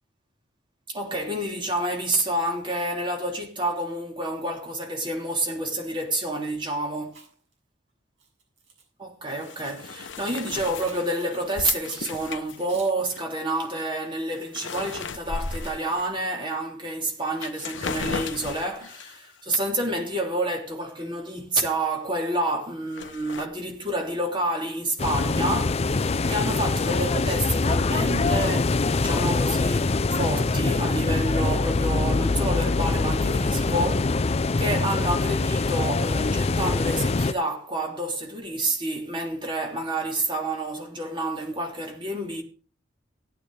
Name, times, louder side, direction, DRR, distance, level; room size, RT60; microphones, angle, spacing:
voice 1, 0.9-7.2 9.0-25.9 26.3-34.2 34.6-42.4, right 1 dB, 25° right, 3.2 m, -29 dB
Chewing mastication, 7.0-7.5 8.2-8.8 9.5-9.7 10.8-11.2 11.9-12.1 12.7-13.0, right 4 dB, 80° right, 6.9 m, -49 dB
sound 1, 9.3-13.2 13.7-13.8 14.2-16.3 16.9-17.0 17.3-19.3 22.9-23.5, left 4 dB, 85° left, 0.9 m, -35 dB
sound 2, 25.0-37.3, left 3 dB, 35° left, 0.5 m, -24 dB
18.0 x 9.0 x 3.4 m
head